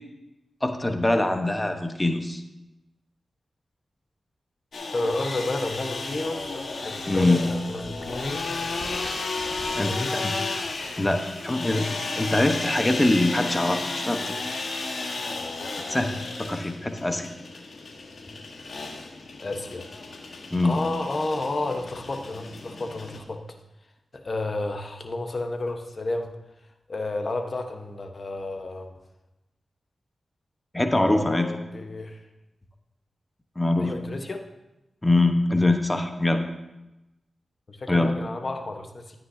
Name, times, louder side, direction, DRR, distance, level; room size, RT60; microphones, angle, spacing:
voice 1, 0.6-2.4 7.1-7.5 9.7-9.9 10.2-10.3 11.0-14.4 15.9-16.1 16.4-17.3 20.5-20.8 30.7-31.5 33.6-33.9 35.0-36.4 37.9-38.1, left 2 dB, 20° left, 6 dB, 1.1 m, -23 dB
sound 1, 4.7-23.2, left 3 dB, 70° left, 1.5 m, -33 dB
voice 2, 4.9-8.8 9.9-10.3 19.4-23.4 24.2-26.3 26.9-28.9 31.0-32.2 33.8-34.4 37.7-39.2, left 2 dB, 50° left, 4 dB, 1.2 m, -31 dB
13.0 x 9.2 x 2.8 m, 0.97 s
cardioid pair, 45°, 0 cm